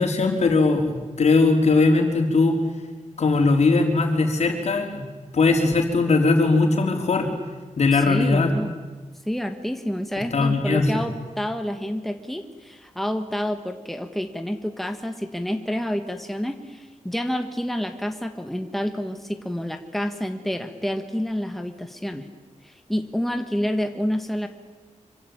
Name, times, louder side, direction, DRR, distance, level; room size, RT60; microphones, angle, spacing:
voice 1, 0.0-2.6 3.2-5.0 5.3-7.3 7.8-8.5 10.3-10.9, left 3 dB, 60° left, 4 dB, 4.4 m, -19 dB
voice 2, 7.9-8.7 9.2-22.3 22.6-24.5, equal, ahead, 6 dB, 1.6 m, -28 dB
26.5 x 25.0 x 8.8 m, 1.3 s
wide cardioid pair, 155°, 13 cm